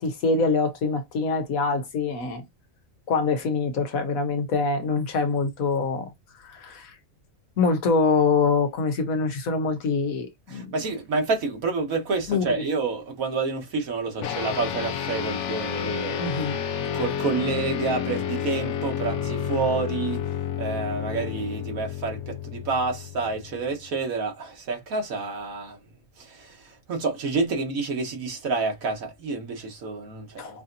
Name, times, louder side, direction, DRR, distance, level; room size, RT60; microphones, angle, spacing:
voice 1, 0.0-2.4 3.1-6.1 6.4-6.9 7.6-10.7 12.3-12.5 16.2-16.6 30.4-30.6, left 4 dB, 80° left, 1.5 m, -24 dB
voice 2, 10.5-16.3 16.9-20.2 20.6-25.8 26.2-30.6, right 4 dB, 80° right, 1.7 m, -29 dB
sound 1, 14.2-23.9, left 9 dB, 65° left, 1.0 m, -30 dB
5.4 x 2.8 x 2.6 m
omnidirectional pair, 1.4 m